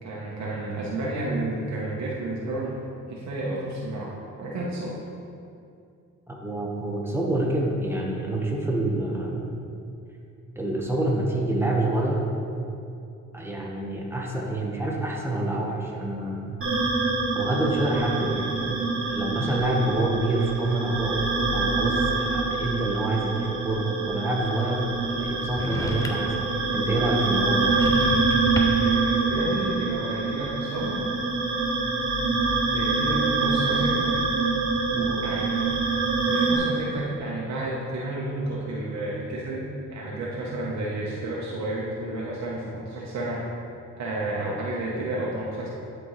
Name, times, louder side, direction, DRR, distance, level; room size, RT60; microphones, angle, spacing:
voice 1, 0.0-2.8 3.1-5.0 28.6-31.1 32.7-34.2 34.9-35.6 36.3-43.4 44.0-45.7, right 2 dB, 65° right, -5 dB, 1.1 m, -31 dB
voice 2, 6.3-9.5 10.5-12.2 13.3-16.6 17.3-27.7, right 2 dB, 10° right, -2 dB, 1.3 m, -27 dB
sound 1, 16.6-36.6, right 3 dB, 45° right, 1.5 m, -25 dB
sound 2, 25.5-26.4 27.5-29.0, left 1 dB, 10° left, 0.5 m, -32 dB
10.5 x 4.4 x 3.2 m, 2.6 s
cardioid pair, 90°, 30 cm